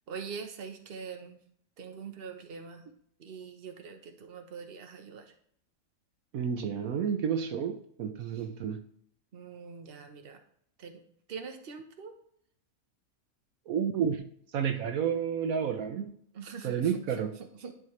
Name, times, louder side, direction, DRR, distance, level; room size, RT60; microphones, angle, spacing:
voice 1, 0.1-1.4 1.8-2.8 3.2-5.3 8.2-8.5 9.3-10.4 10.8-11.0 11.3-12.1 16.3-17.7, right 6 dB, 45° right, 5 dB, 1.1 m, -43 dB
voice 2, 6.3-8.8 13.7-14.2 14.5-16.1 16.6-17.3, right 7 dB, 75° right, 6 dB, 1.1 m, -30 dB
11.5 x 5.4 x 3.2 m, 0.66 s
omnidirectional pair, 1.5 m